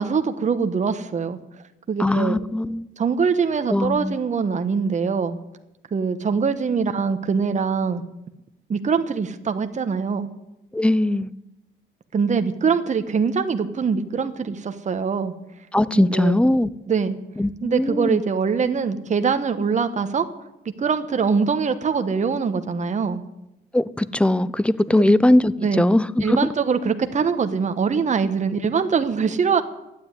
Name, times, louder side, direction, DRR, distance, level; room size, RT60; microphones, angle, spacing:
voice 1, 0.0-1.4 1.9-2.4 3.0-5.4 5.9-8.0 8.7-10.3 12.1-15.3 16.0-16.4 16.9-17.2 17.6-20.3 20.6-23.2 25.0-25.1 25.6-25.9 26.2-29.6, right 5 dB, 35° right, 1.2 m, -23 dB
voice 2, 2.0-2.9 3.7-4.1 10.7-11.3 15.7-16.7 17.4-18.2 23.7-26.5, left 1 dB, 5° left, 0.6 m, -20 dB
12.0 x 9.6 x 9.8 m
cardioid pair, 90°, 20 cm